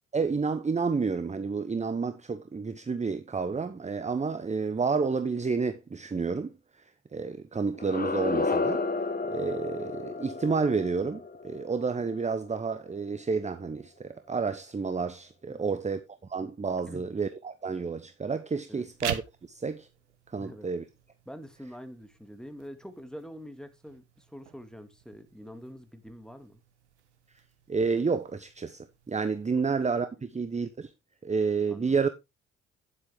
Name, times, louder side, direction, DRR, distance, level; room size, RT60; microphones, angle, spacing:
voice 1, 0.1-6.5 7.1-8.8 9.3-16.0 16.3-19.2 19.5-19.9 20.3-20.8 27.7-30.9 31.2-32.1, right 5 dB, 20° right, 0.9 m, -30 dB
sound 1, 7.7-12.7, left 3 dB, 25° left, 1.3 m, -32 dB
voice 2, 15.5-15.8 16.9-17.0 18.7-18.9 20.4-20.7 21.3-26.6 31.7-32.1, equal, ahead, 2.2 m, -45 dB
sound 2, 18.8-29.8, right 11 dB, 85° right, 0.9 m, -45 dB
10.5 x 7.8 x 3.5 m
hypercardioid pair, 50°, 34 cm